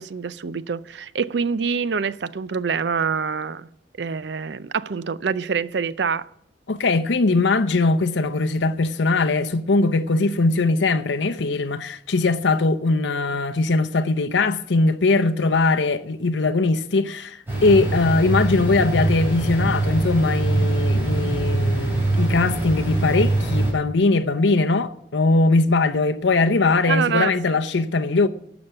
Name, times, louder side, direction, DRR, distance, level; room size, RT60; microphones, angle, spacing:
voice 1, 0.0-3.7 4.0-6.3 26.9-27.6, right 5 dB, 65° right, 0.5 m, -25 dB
voice 2, 6.7-28.3, left 3 dB, 75° left, 0.7 m, -20 dB
sound 1, 17.5-23.7, right 2 dB, 10° right, 5.5 m, -23 dB
12.0 x 7.1 x 8.0 m
head